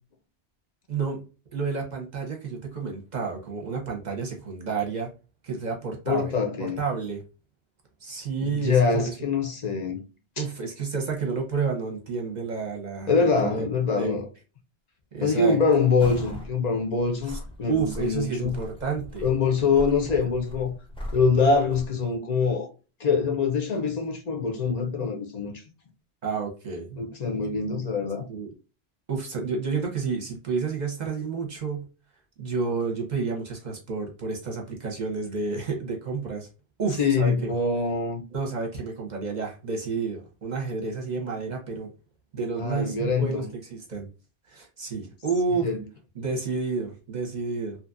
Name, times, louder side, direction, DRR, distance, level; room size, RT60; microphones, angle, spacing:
voice 1, 0.9-1.2 1.5-5.1 5.4-6.3 6.6-7.2 8.0-9.1 10.4-14.2 15.1-15.6 17.3-17.4 17.7-19.3 26.2-27.0 28.3-28.5 29.1-31.9 32.4-36.5 36.8-37.5 38.3-41.9 42.3-44.1 44.5-45.7 46.2-47.8, right 4 dB, 45° right, 0.8 m, -30 dB
voice 2, 6.1-6.8 8.4-10.0 10.4-10.5 13.1-14.3 15.2-18.6 19.2-20.7 21.1-22.7 23.0-25.5 27.0-28.2 37.0-38.2 42.6-43.5 45.5-45.8, left 4 dB, 45° left, 0.7 m, -24 dB
sound 1, 16.0-16.5 16.9-21.9, left 1 dB, 10° left, 0.3 m, -39 dB
2.8 x 2.4 x 2.4 m
omnidirectional pair, 1.2 m